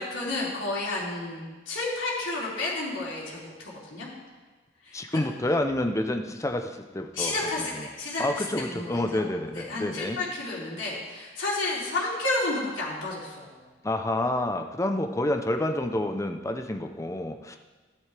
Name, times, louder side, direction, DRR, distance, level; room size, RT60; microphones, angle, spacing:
voice 1, 0.0-4.1 4.8-5.2 7.1-9.2 9.5-13.6, left 2 dB, 85° left, -7 dB, 3.0 m, -31 dB
voice 2, 4.9-7.3 7.7-7.9 8.2-10.2 13.8-17.6, left 1 dB, 15° left, 5 dB, 0.6 m, -28 dB
13.0 x 11.0 x 3.4 m, 1.3 s
head